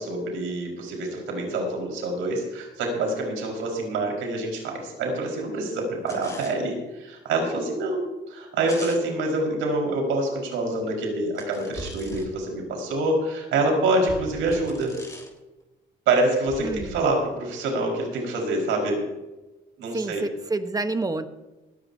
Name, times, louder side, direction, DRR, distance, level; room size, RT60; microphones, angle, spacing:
voice 1, 0.0-8.0 8.3-14.9 16.1-19.0 19.8-20.2, right 2 dB, 90° right, 1 dB, 4.9 m, -26 dB
sound 1, 6.1-6.6 8.7-9.1 11.3-12.4 14.5-15.4, left 2 dB, 15° left, 3.6 m, -43 dB
sound 2, 11.7-12.3 14.1-14.7 16.5-17.0, right 2 dB, 40° right, 6.0 m, -39 dB
voice 2, 16.6-16.9 19.9-21.3, right 3 dB, 20° right, 9 dB, 1.1 m, -28 dB
19.5 x 15.0 x 2.8 m, 1.1 s
cardioid pair, 90°, 20 cm